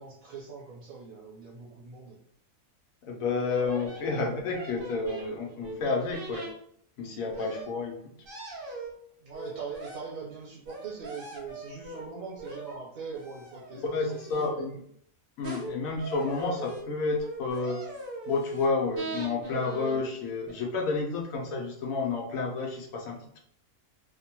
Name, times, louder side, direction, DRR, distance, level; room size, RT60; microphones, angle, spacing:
voice 1, 0.0-2.2 9.2-13.8 14.2-14.7, right 5 dB, 80° right, -4 dB, 1.4 m, -41 dB
voice 2, 3.0-6.5 7.0-8.0 13.7-14.8 15.4-17.9 18.3-23.4, left 3 dB, 85° left, 0 dB, 1.1 m, -30 dB
sound 1, 3.5-4.0 4.5-6.5 7.3-7.7 8.2-8.9 9.3-10.0 10.6-12.1 12.4-12.8 13.1-14.5 15.4-15.7 16.0-16.8 17.2-18.7 19.0-20.0 20.5-20.6, right 1 dB, 55° right, 0.7 m, -40 dB
3.0 x 2.1 x 2.8 m, 0.67 s
omnidirectional pair, 1.4 m